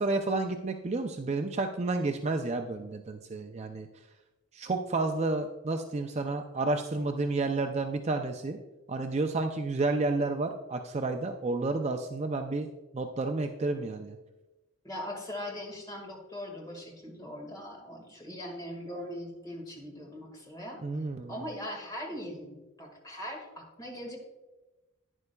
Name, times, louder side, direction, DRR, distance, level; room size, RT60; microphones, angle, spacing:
voice 1, 0.0-3.9 4.5-8.6 8.9-12.7 12.9-14.2 20.8-21.4, right 3 dB, 30° right, 5 dB, 0.4 m, -30 dB
voice 2, 14.8-20.8 21.3-24.2, left 1 dB, 15° left, 0 dB, 1.8 m, -40 dB
11.0 x 9.7 x 2.3 m, 1.1 s
head